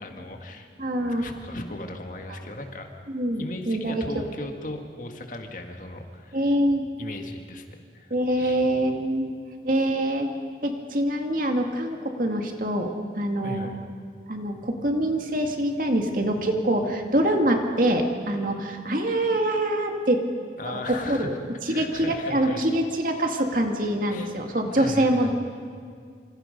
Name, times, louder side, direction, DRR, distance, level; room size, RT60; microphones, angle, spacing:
voice 1, 0.0-0.7 1.0-2.9 3.4-6.4 7.0-8.6 13.4-13.8 20.6-21.4 21.7-22.7 24.1-24.3 24.7-25.3, left 1 dB, 45° left, 4 dB, 2.0 m, -37 dB
voice 2, 0.8-1.3 2.3-2.4 3.1-4.2 6.3-6.8 8.1-9.3 9.6-10.3 10.6-13.7 14.3-20.2 20.7-21.3 21.7-25.3, right 1 dB, 45° right, 3 dB, 2.2 m, -25 dB
27.5 x 26.5 x 5.4 m, 2.2 s
head